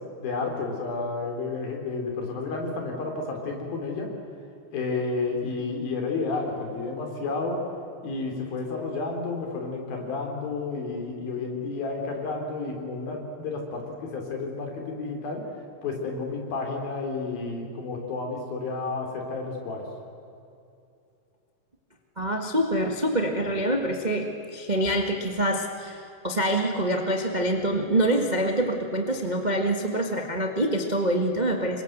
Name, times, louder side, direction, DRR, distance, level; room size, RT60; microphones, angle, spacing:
voice 1, 0.2-4.1 4.7-7.6 8.0-15.4 15.8-19.9, left 3 dB, 70° left, 2 dB, 5.5 m, -31 dB
voice 2, 22.2-31.8, right 1 dB, 80° right, 3 dB, 0.4 m, -25 dB
27.5 x 23.0 x 8.0 m, 2.5 s
omnidirectional pair, 4.3 m